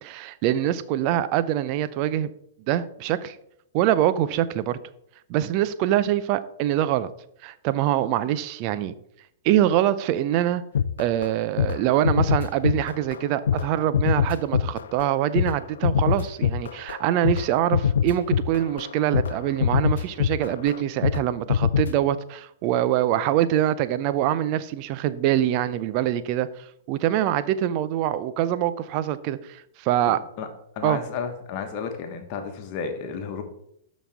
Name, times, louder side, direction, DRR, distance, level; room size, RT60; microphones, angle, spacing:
voice 1, 0.0-2.3 2.7-3.4 3.7-4.8 5.3-7.1 7.4-8.9 9.4-10.6 11.0-30.2 30.8-31.0, right 12 dB, 40° right, 0.5 m, -24 dB
sound 1, 10.8-11.3 11.6-11.8 12.0-13.2 13.5-21.2 21.5-22.0, left 8 dB, 60° left, 0.3 m, -24 dB
voice 2, 30.1-30.5 30.7-33.4, left 6 dB, 40° left, 1.3 m, -32 dB
12.5 x 4.2 x 3.5 m
figure-of-eight pair, 105°, 0 cm